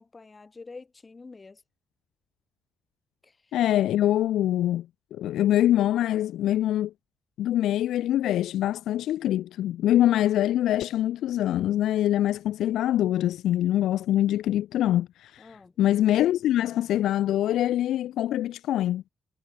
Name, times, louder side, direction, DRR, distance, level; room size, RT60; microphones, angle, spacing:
voice 1, 0.0-1.6 3.2-3.6 15.4-15.7, left 3 dB, 25° left, 4.7 m, -47 dB
voice 2, 3.5-6.9 7.4-19.0, left 12 dB, 80° left, 0.5 m, -24 dB
cardioid pair, 90°, 0 cm